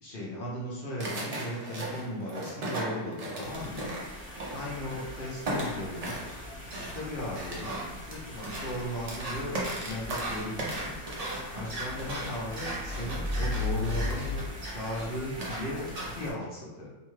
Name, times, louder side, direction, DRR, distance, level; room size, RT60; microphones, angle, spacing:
voice 1, 0.0-3.9 4.5-6.2 6.8-7.8 8.1-11.0 11.5-16.9, left 1 dB, 55° left, -5 dB, 0.6 m, -37 dB
sound 1, 1.0-5.1 5.4-16.3, right 1 dB, 85° right, 0.3 m, -37 dB
sound 2, 3.4-16.3, equal, 5° right, 0.6 m, -44 dB
sound 3, 5.7-14.5, left 2 dB, 65° right, 1.1 m, -38 dB
2.7 x 2.2 x 3.0 m, 1.0 s
omnidirectional pair, 1.5 m